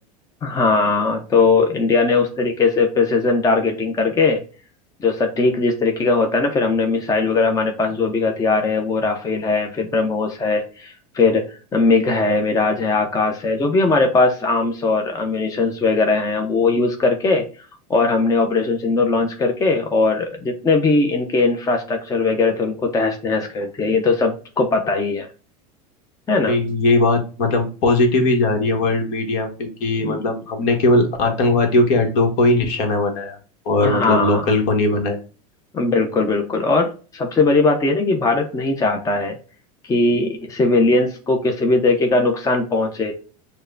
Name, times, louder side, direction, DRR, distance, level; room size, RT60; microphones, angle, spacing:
voice 1, 0.4-4.4 5.0-11.4 11.7-17.5 17.9-25.3 26.3-26.6 30.0-30.3 33.8-34.5 35.7-39.4 39.9-43.1, left 3 dB, 15° left, 3 dB, 0.6 m, -19 dB
voice 2, 26.5-33.4 33.6-35.2, left 2 dB, 60° left, 4 dB, 1.3 m, -19 dB
6.3 x 2.2 x 2.5 m, 0.37 s
hypercardioid pair, 110°, 20 cm